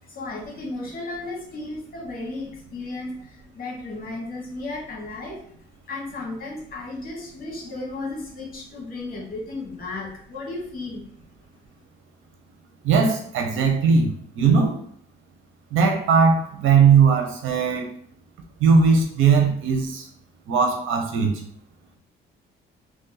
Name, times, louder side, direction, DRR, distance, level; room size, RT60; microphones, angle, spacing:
voice 1, 0.0-5.4 5.9-11.0, left 2 dB, 50° left, -1 dB, 1.4 m, -34 dB
voice 2, 12.8-14.8 15.7-17.9 18.6-20.1 20.5-21.4, right 5 dB, 80° right, 3 dB, 0.9 m, -19 dB
3.0 x 2.6 x 4.0 m, 0.63 s
cardioid pair, 90°, 20 cm